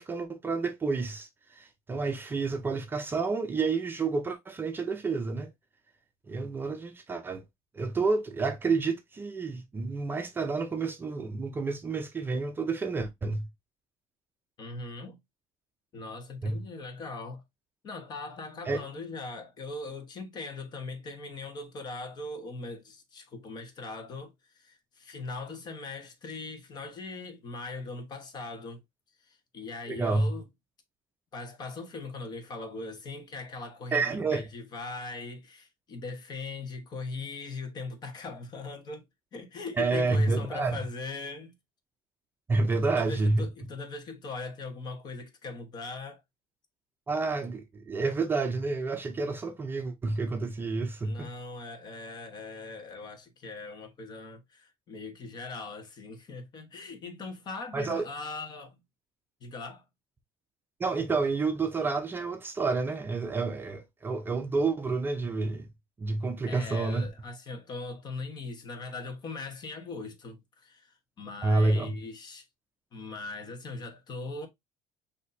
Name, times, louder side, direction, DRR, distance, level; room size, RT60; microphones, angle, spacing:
voice 1, 0.0-5.5 6.3-7.4 7.7-13.5 16.4-16.6 18.7-18.8 29.9-30.3 33.9-34.4 39.8-40.8 42.5-43.5 47.1-51.3 57.7-58.1 60.8-65.7 66.0-67.1 71.4-71.9, right 3 dB, 20° right, 0.5 m, -29 dB
voice 2, 14.6-15.2 15.9-17.4 17.8-28.8 29.2-30.5 31.3-41.5 42.7-46.2 51.0-58.8 59.4-59.8 66.5-72.4 72.9-74.5, left 3 dB, 40° left, 1.2 m, -40 dB
6.2 x 2.8 x 2.6 m
cardioid pair, 140°, 11 cm